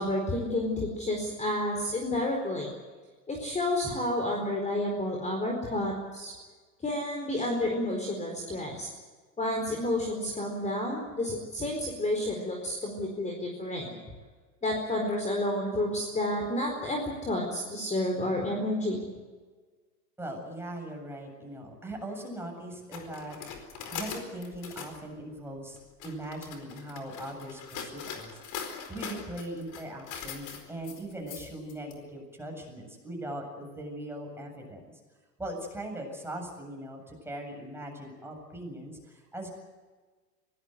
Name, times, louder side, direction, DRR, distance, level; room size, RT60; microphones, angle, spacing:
voice 1, 0.0-2.7 3.3-6.3 6.8-8.9 9.4-13.9 14.6-19.0, left 1 dB, 15° left, 2 dB, 4.5 m, -30 dB
voice 2, 20.2-23.4 23.9-28.4 28.9-34.9 35.4-39.5, right 1 dB, 5° right, 1 dB, 7.7 m, -40 dB
sound 1, 22.9-25.0 25.8-31.9, left 6 dB, 40° left, 4.5 m, -41 dB
24.0 x 18.5 x 8.1 m, 1.4 s
hypercardioid pair, 100°, 47 cm